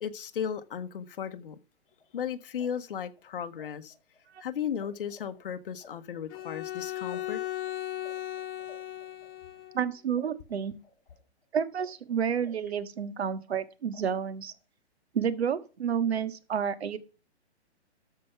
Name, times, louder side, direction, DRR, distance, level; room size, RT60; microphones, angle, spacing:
voice 1, 0.0-1.6 2.1-3.9 4.4-7.4, left 8 dB, 50° left, 1.3 m, -35 dB
sound 1, 1.9-4.9 5.1-9.8 10.2-12.7 13.0-14.6, left 2 dB, 5° left, 3.7 m, -57 dB
Bowed string instrument, 6.3-9.8, left 14 dB, 20° left, 1.1 m, -37 dB
voice 2, 9.7-10.7 11.5-14.5 15.1-17.0, right 7 dB, 65° right, 1.7 m, -30 dB
13.5 x 5.9 x 5.8 m
hypercardioid pair, 165°, 34 cm